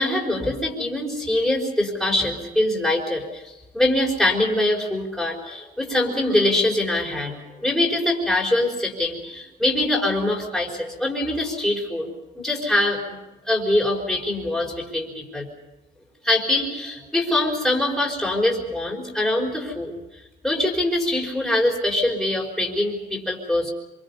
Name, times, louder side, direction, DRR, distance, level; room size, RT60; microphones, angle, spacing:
voice 1, 0.0-13.2 13.5-15.5 16.2-19.9 20.4-23.7, left 1 dB, ahead, -2 dB, 4.9 m, -23 dB
26.0 x 24.5 x 5.6 m, 1.1 s
cardioid pair, 140°, 18 cm